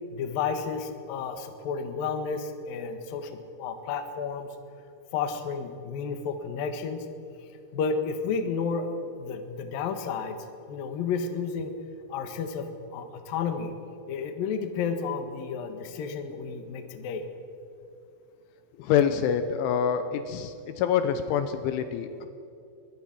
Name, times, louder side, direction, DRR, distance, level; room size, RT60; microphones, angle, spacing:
voice 1, 0.1-4.5 5.1-7.1 7.7-10.4 10.7-11.7 12.1-13.7 14.1-17.2, left 5 dB, 60° left, 7 dB, 2.8 m, -31 dB
voice 2, 18.8-22.3, left 8 dB, 80° left, 9 dB, 3.2 m, -26 dB
24.0 x 21.5 x 6.1 m, 2.7 s
omnidirectional pair, 5.7 m